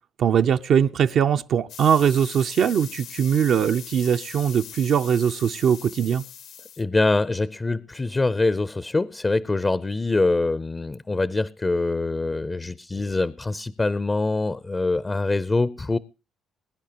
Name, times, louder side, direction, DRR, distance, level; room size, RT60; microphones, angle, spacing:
voice 1, 0.2-6.2, right 8 dB, 65° right, 0.5 m, -21 dB
sound 1, 1.7-6.8, left 9 dB, 75° left, 1.0 m, -41 dB
voice 2, 6.8-16.0, left 2 dB, 20° left, 0.5 m, -24 dB
21.5 x 10.0 x 2.9 m
cardioid pair, 80°, 0 cm